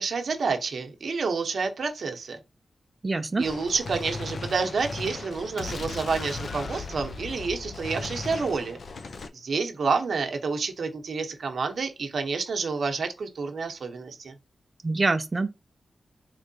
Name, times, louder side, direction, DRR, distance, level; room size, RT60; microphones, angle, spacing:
voice 1, 0.0-2.4 3.4-8.8 9.3-14.3, right 4 dB, 70° right, 0.8 m, -29 dB
voice 2, 3.0-3.4 14.8-15.5, right 3 dB, 35° right, 0.4 m, -25 dB
Gunshot gunfire, 3.4-9.3, left 3 dB, 60° left, 0.5 m, -37 dB
3.7 x 3.2 x 2.7 m
wide cardioid pair, 85°, 0 cm